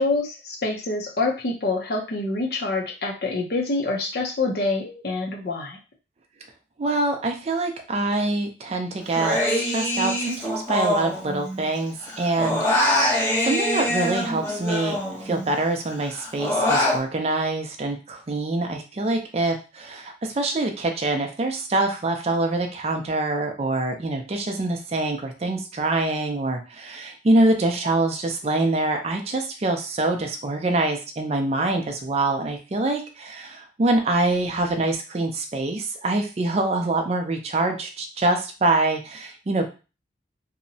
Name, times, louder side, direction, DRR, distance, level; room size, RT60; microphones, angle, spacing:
voice 1, 0.0-5.8, left 3 dB, 55° left, 0 dB, 0.5 m, -26 dB
voice 2, 6.8-39.7, right 2 dB, 35° right, 4 dB, 0.4 m, -25 dB
Human voice, 9.1-11.8 12.0-15.5 15.9-17.0, left 1 dB, 15° left, 0.6 m, -24 dB
2.7 x 2.0 x 2.6 m, 0.32 s
head